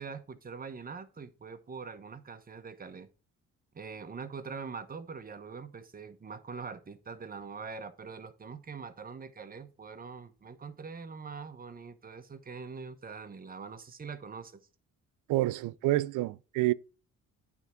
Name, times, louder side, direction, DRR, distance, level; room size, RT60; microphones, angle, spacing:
voice 1, 0.0-3.1 3.7-14.6, right 5 dB, 30° right, 1.1 m, -43 dB
voice 2, 15.3-16.7, right 16 dB, 90° right, 0.5 m, -28 dB
9.1 x 3.6 x 5.7 m
cardioid pair, 90°, 30 cm